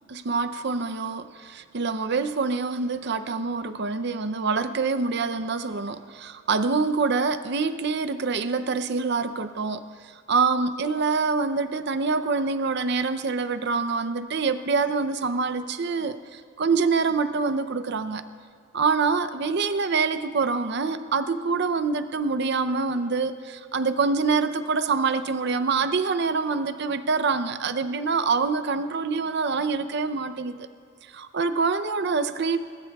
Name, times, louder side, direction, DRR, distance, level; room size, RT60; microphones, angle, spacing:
voice 1, 0.1-9.8 10.3-18.2 18.7-30.6 31.1-32.6, right 4 dB, 55° right, 11 dB, 0.6 m, -25 dB
22.0 x 19.5 x 2.3 m, 2.2 s
head